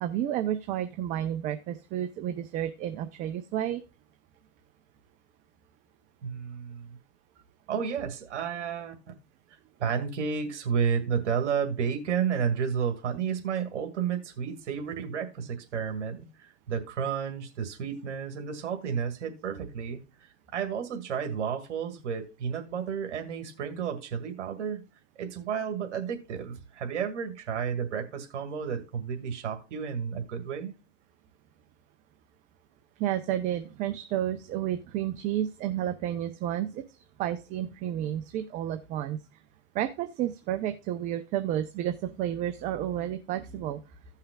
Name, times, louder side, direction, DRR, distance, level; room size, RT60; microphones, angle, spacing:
voice 1, 0.0-3.8 33.0-39.2 39.7-43.8, right 11 dB, 20° right, 0.4 m, -31 dB
voice 2, 6.2-7.0 7.7-8.9 9.8-20.0 20.5-24.8 25.2-30.7, right 7 dB, 70° right, 1.9 m, -31 dB
15.5 x 5.7 x 2.2 m
hypercardioid pair, 130°, 36 cm